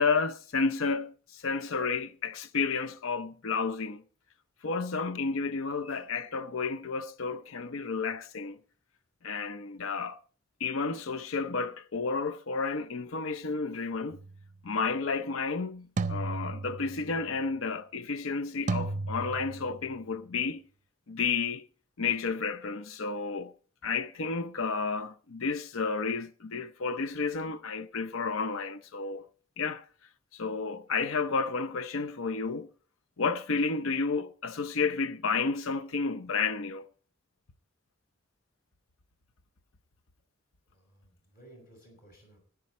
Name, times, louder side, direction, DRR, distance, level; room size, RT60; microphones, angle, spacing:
voice 1, 0.0-4.0 4.6-8.6 9.2-10.2 10.6-14.2 14.6-20.6 21.1-21.6 22.0-23.5 23.8-29.2 29.6-29.8 30.3-32.7 33.2-36.9, left 4 dB, 85° left, 0.7 m, -31 dB
sound 1, 14.1-14.4 16.0-17.1 18.7-19.9, right 3 dB, 35° right, 0.5 m, -34 dB
voice 2, 40.7-42.4, right 1 dB, 45° left, 5.7 m, -56 dB
14.0 x 10.5 x 4.2 m
head